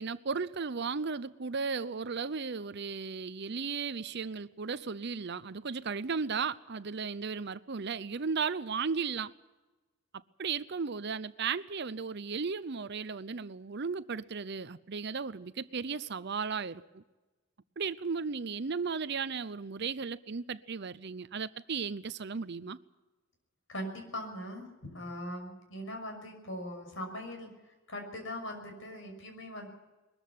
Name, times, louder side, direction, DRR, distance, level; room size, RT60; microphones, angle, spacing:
voice 1, 0.0-9.3 10.4-17.0 17.8-22.8, right 5 dB, 55° right, 0.7 m, -35 dB
voice 2, 23.7-24.7 24.9-27.5 27.9-29.7, equal, 65° left, 6.2 m, -40 dB
21.5 x 14.0 x 9.6 m
head